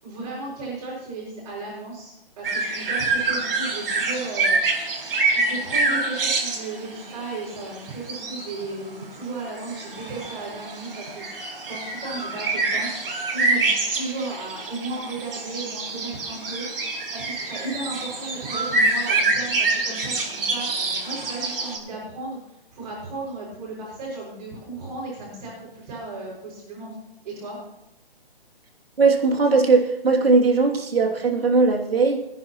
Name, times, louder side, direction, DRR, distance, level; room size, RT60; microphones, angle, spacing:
voice 1, 0.0-11.3 11.7-26.9 27.2-27.6, right 3 dB, 40° right, -7 dB, 6.1 m, -35 dB
sound 1, 2.4-21.8, right 3 dB, 70° right, 4.7 m, -26 dB
voice 2, 29.0-32.2, right 4 dB, 85° right, 1 dB, 2.8 m, -19 dB
25.0 x 10.0 x 3.1 m, 0.86 s
hypercardioid pair, 155°, 29 cm